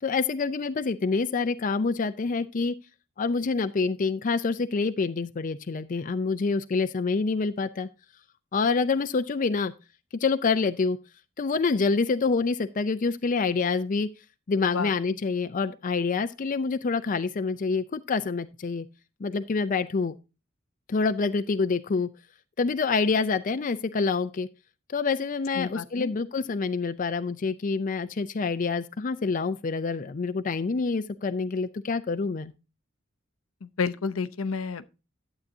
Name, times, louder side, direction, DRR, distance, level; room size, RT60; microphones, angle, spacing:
voice 1, 0.0-2.8 3.2-7.9 8.5-9.7 10.2-11.0 11.4-14.1 14.5-18.9 19.2-20.2 20.9-22.1 22.6-24.5 24.9-32.5, left 4 dB, 40° left, 0.5 m, -27 dB
voice 2, 25.6-26.1 33.6-34.9, left 5 dB, 80° left, 0.7 m, -30 dB
11.5 x 8.1 x 2.7 m
head